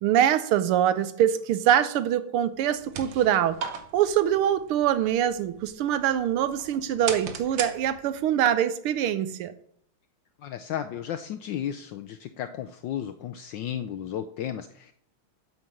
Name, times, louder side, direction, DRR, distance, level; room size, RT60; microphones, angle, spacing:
voice 1, 0.0-3.6 3.9-9.5, right 10 dB, 80° right, 1.6 m, -24 dB
sound 1, 2.6-8.3, right 6 dB, 65° right, 1.6 m, -39 dB
voice 2, 10.4-14.9, left 10 dB, 75° left, 1.1 m, -34 dB
8.6 x 5.3 x 7.6 m
omnidirectional pair, 2.4 m